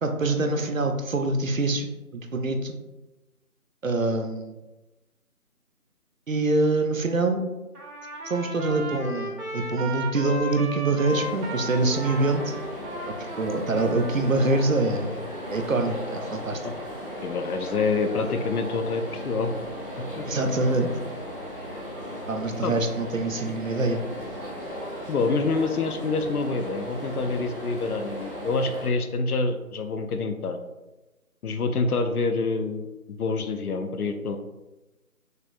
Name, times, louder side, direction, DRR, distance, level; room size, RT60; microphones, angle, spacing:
voice 1, 0.0-2.8 3.8-4.5 6.3-7.5 8.2-12.5 13.1-15.2 15.5-16.6 20.2-20.9 22.3-24.0, right 2 dB, 60° right, 6 dB, 0.6 m, -25 dB
Trumpet, 7.7-14.9, right 1 dB, 85° right, 1.2 m, -36 dB
sound 1, 11.0-28.9, equal, 40° left, 0.7 m, -36 dB
voice 2, 17.2-19.5 20.2-20.3 22.6-22.7 25.1-30.6 31.4-34.4, left 4 dB, 75° left, 8 dB, 0.6 m, -27 dB
6.5 x 2.3 x 2.5 m, 1.1 s
figure-of-eight pair, 175°, 45 cm